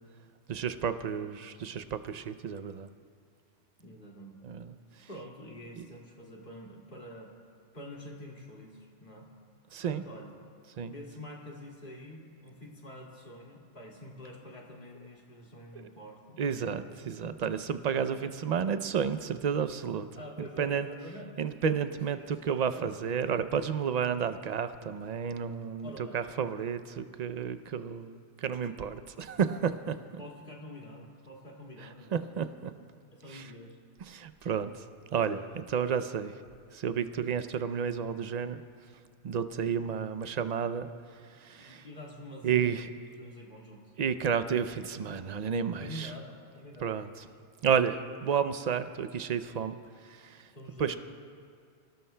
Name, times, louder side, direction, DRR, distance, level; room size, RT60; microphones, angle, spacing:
voice 1, 0.5-2.9 4.4-5.1 5.8-5.9 9.7-10.0 10.8-10.9 15.7-15.8 16.4-20.1 20.6-20.9 21.4-30.0 32.1-32.7 33.3-33.5 34.1-34.8 35.1-36.3 36.7-38.6 39.2-40.9 41.4-41.9 42.4-42.9 44.0-46.1 46.8-47.3 47.6-49.8 50.0-50.5 50.8-51.0, right 7 dB, 50° right, 11 dB, 0.5 m, -31 dB
voice 2, 3.8-4.4 5.1-7.3 7.7-9.3 9.8-10.3 10.9-16.4 17.0-17.5 18.1-18.3 20.2-21.4 22.1-22.9 25.8-26.2 30.2-32.1 33.1-33.8 41.6-42.9 43.2-43.9 45.8-47.0 50.5-51.0, equal, 45° left, -2 dB, 2.4 m, -47 dB
26.5 x 18.0 x 2.2 m, 2.2 s
omnidirectional pair, 1.2 m